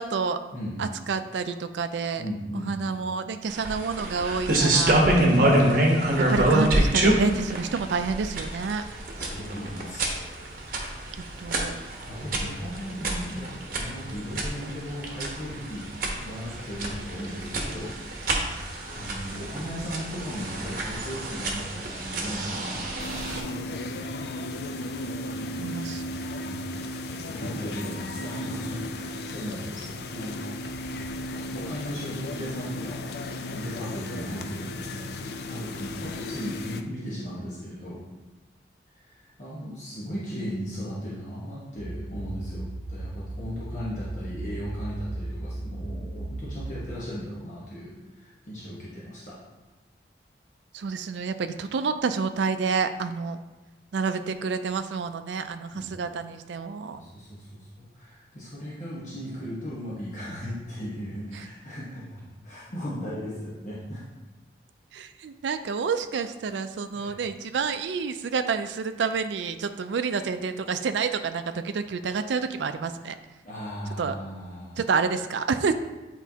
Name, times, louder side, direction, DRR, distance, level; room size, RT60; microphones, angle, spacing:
voice 1, 0.0-0.4 0.8-2.2 2.5-5.0 6.2-8.8 11.4-11.8 25.6-26.0 50.7-53.4 53.9-57.0 64.9-73.2 74.0-74.2 74.8-75.7, right 5 dB, 80° right, 9 dB, 0.4 m, -29 dB
voice 2, 0.5-0.8 2.2-3.0 5.1-5.7 9.2-10.2 11.8-13.5 13.8-15.9 16.2-17.9 18.5-22.9 26.4-27.0 27.3-30.5 31.3-33.1 33.5-38.0 39.0-42.6 42.9-49.4 55.7-56.0 56.9-64.0 66.9-67.2 73.4-74.9, equal, 40° left, -8 dB, 1.2 m, -36 dB
sound 1, 3.5-23.4, right 1 dB, 50° right, 1.0 m, -26 dB
sound 2, 23.0-36.8, left 2 dB, 65° left, 0.4 m, -35 dB
sound 3, 41.8-47.0, right 1 dB, 35° right, 0.5 m, -36 dB
8.2 x 4.5 x 2.8 m, 1.2 s
head